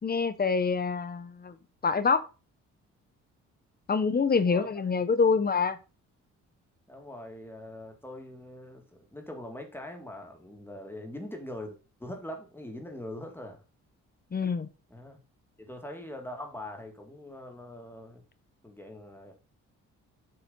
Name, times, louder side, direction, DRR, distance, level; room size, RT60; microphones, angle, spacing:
voice 1, 0.0-1.6 1.8-2.2 3.9-5.8 14.3-14.7, left 5 dB, 30° left, 13 dB, 1.2 m, -26 dB
voice 2, 4.2-4.7 6.9-13.6 14.9-15.2 15.6-18.2 18.6-19.3, left 1 dB, 5° left, 3 dB, 3.0 m, -42 dB
8.2 x 5.5 x 5.7 m, 0.33 s
cardioid pair, 90°, 30 cm